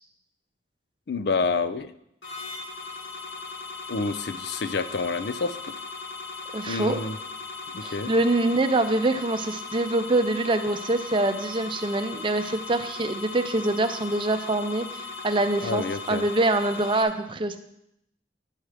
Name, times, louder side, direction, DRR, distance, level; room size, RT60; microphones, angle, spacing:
voice 1, 1.1-1.9 3.9-5.7 6.7-7.2 7.7-8.1 15.6-16.2, left 4 dB, 65° left, 12 dB, 0.5 m, -28 dB
sound 1, 2.2-17.0, left 4 dB, 80° left, 1.6 m, -38 dB
voice 2, 6.5-7.0 7.8-17.6, right 2 dB, 30° right, 8 dB, 0.5 m, -25 dB
10.5 x 6.0 x 4.9 m, 0.78 s
head